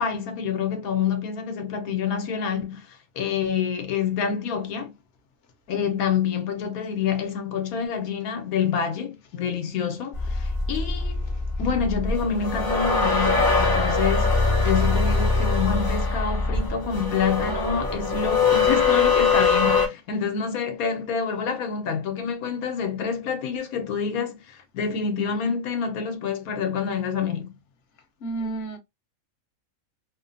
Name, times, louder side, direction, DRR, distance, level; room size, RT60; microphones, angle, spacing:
voice 1, 0.0-2.8 3.2-4.9 5.7-11.2 11.6-27.5, left 7 dB, 85° left, 1.1 m, -27 dB
sound 1, 10.1-19.9, left 4 dB, 25° left, 0.5 m, -22 dB
voice 2, 28.2-28.8, right 3 dB, 55° left, 0.8 m, -31 dB
3.0 x 2.1 x 2.5 m
omnidirectional pair, 1.5 m